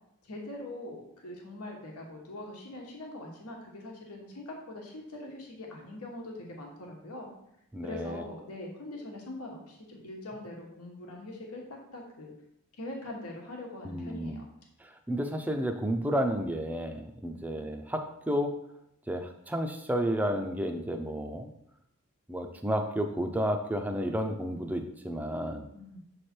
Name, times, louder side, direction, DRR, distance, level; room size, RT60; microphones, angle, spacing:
voice 1, 0.2-7.3 7.8-12.3 12.8-14.4 17.3-17.6 25.7-26.0, left 1 dB, 85° left, 0 dB, 1.2 m, -42 dB
voice 2, 7.7-8.2 13.8-14.4 14.8-18.5 19.1-21.5 22.3-25.7, equal, 5° right, 5 dB, 0.4 m, -31 dB
7.1 x 3.3 x 4.4 m, 0.78 s
head